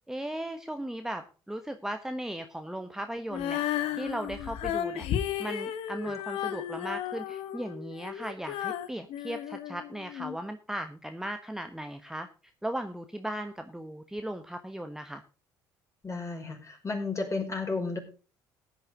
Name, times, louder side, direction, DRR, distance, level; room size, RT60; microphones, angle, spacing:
voice 1, 0.1-5.1 5.4-12.3 12.6-15.2, right 1 dB, 5° right, 6 dB, 1.2 m, -37 dB
Female singing, 3.3-10.3, left 10 dB, 65° left, 1.3 m, -34 dB
voice 2, 16.0-18.0, left 3 dB, 30° left, 3 dB, 5.1 m, -32 dB
15.0 x 9.5 x 3.7 m, 0.35 s
hypercardioid pair, 55°, 11 cm